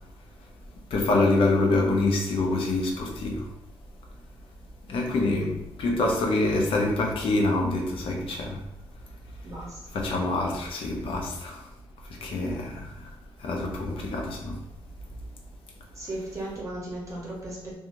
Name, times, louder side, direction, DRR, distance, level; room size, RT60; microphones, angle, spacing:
voice 1, 0.9-3.5 4.9-5.5 5.8-8.6 9.9-11.6 12.2-12.9 13.4-14.6, left 2 dB, 65° left, 0 dB, 0.6 m, -25 dB
voice 2, 9.4-9.8 16.0-17.8, right 1 dB, 30° right, -4 dB, 0.7 m, -36 dB
2.5 x 2.3 x 3.0 m, 0.86 s
wide cardioid pair, 155°, 10 cm